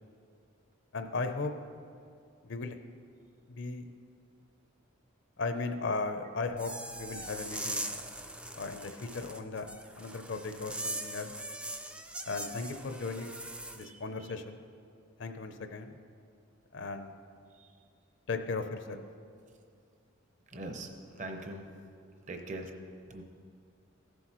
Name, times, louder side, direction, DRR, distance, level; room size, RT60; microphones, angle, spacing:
voice 1, 0.9-1.5 2.4-2.7 3.5-3.9 5.4-7.8 8.6-9.7 10.0-11.3 12.3-13.4 13.7-14.6 15.2-15.9 16.7-17.2 18.3-19.0, left 3 dB, 60° left, 7 dB, 0.6 m, -36 dB
sound 1, 6.5-13.8, right 1 dB, 5° right, 0.3 m, -41 dB
voice 2, 20.5-21.6 22.3-22.7 23.1-23.2, right 2 dB, 35° right, 4 dB, 0.8 m, -41 dB
15.5 x 7.9 x 3.0 m, 2.3 s
head